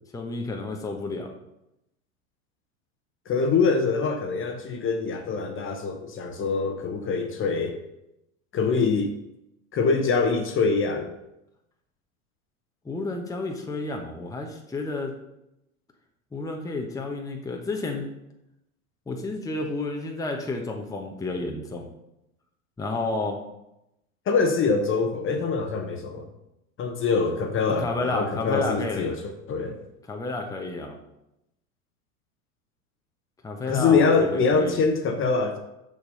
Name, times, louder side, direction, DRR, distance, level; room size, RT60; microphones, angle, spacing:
voice 1, 0.1-1.3 12.8-15.1 16.3-18.1 19.1-21.9 22.8-23.4 27.8-29.0 30.1-31.0 33.4-34.8, left 2 dB, 10° left, 1 dB, 1.0 m, -31 dB
voice 2, 3.3-7.8 8.5-9.1 9.7-11.1 24.3-26.3 26.8-29.8 33.7-35.6, left 4 dB, 30° left, 5 dB, 1.1 m, -24 dB
6.8 x 6.4 x 5.4 m, 0.87 s
figure-of-eight pair, 85°, 44 cm